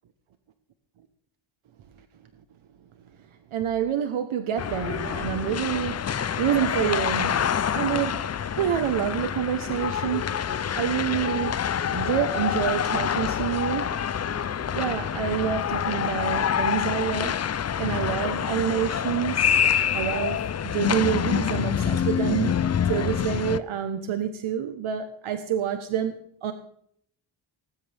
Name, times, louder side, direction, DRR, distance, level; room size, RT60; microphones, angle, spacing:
voice 1, 3.5-6.1 6.4-7.5 7.7-14.0 14.3-17.4 17.8-19.6 19.9-26.5, right 9 dB, 80° right, 1.2 m, -28 dB
sound 1, 4.6-23.6, left 8 dB, 35° left, 0.5 m, -26 dB
19.0 x 16.0 x 3.5 m
wide cardioid pair, 135°, 48 cm